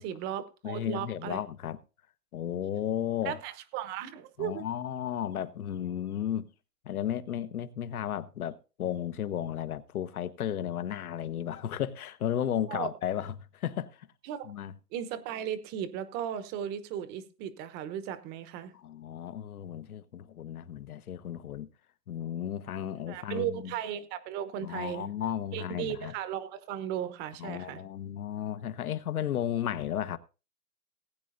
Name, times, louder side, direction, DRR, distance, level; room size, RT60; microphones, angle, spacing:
voice 1, 0.0-1.4 3.2-4.6 12.7-12.9 14.2-14.5 14.9-18.7 23.1-25.1 25.5-27.8, right 10 dB, 20° right, 0.9 m, -36 dB
voice 2, 0.6-1.8 2.3-3.4 4.4-6.5 6.8-14.1 14.4-14.7 18.7-21.7 22.1-23.7 24.6-26.1 27.4-30.2, left 10 dB, 70° left, 1.3 m, -34 dB
19.5 x 9.5 x 2.6 m
hypercardioid pair, 140°, 46 cm